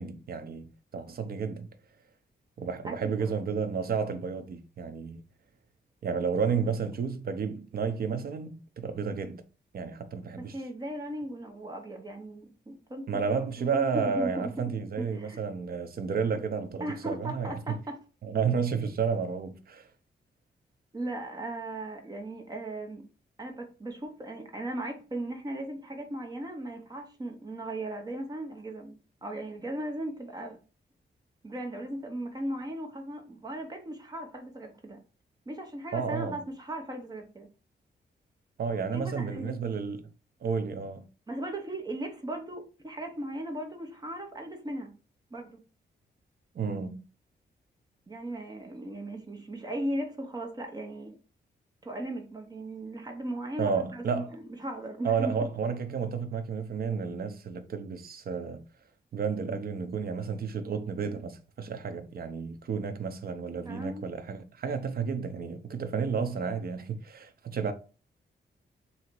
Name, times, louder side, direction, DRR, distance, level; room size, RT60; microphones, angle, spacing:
voice 1, 0.0-1.7 2.6-5.2 6.0-9.4 9.7-10.6 13.1-17.6 18.2-19.9 35.9-36.4 38.6-40.1 40.4-41.1 46.5-47.0 53.6-54.3 55.0-58.6 59.1-67.7, right 6 dB, 55° right, 0.7 m, -31 dB
voice 2, 2.8-3.4 6.5-6.6 10.4-13.1 13.6-14.5 15.0-15.4 16.8-18.0 20.9-23.0 23.4-28.9 29.2-30.6 31.4-35.0 35.5-37.5 38.9-39.6 41.3-44.9 45.3-45.6 48.1-51.2 51.8-55.4 63.6-64.1, right 1 dB, 20° right, 0.8 m, -37 dB
3.9 x 2.8 x 4.4 m
wide cardioid pair, 165°, 18 cm